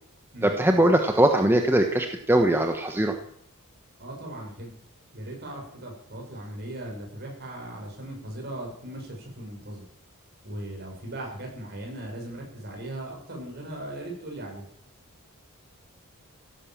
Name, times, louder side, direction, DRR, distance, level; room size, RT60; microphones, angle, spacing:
voice 1, 0.4-3.1, right 1 dB, 10° right, 4 dB, 1.2 m, -21 dB
voice 2, 4.0-4.7 5.1-9.8 10.4-14.7, right 1 dB, 50° right, 1 dB, 6.7 m, -38 dB
17.0 x 11.0 x 7.5 m, 0.65 s
head